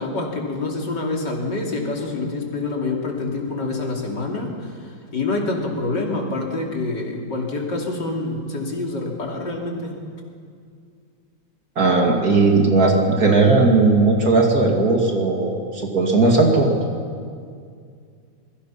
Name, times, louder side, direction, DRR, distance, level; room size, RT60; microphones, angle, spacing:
voice 1, 0.0-4.7 5.1-9.9, left 2 dB, 60° left, 0 dB, 3.5 m, -26 dB
voice 2, 11.8-16.7, right 3 dB, 50° right, 1 dB, 2.8 m, -17 dB
25.5 x 22.0 x 5.9 m, 2.2 s
omnidirectional pair, 2.1 m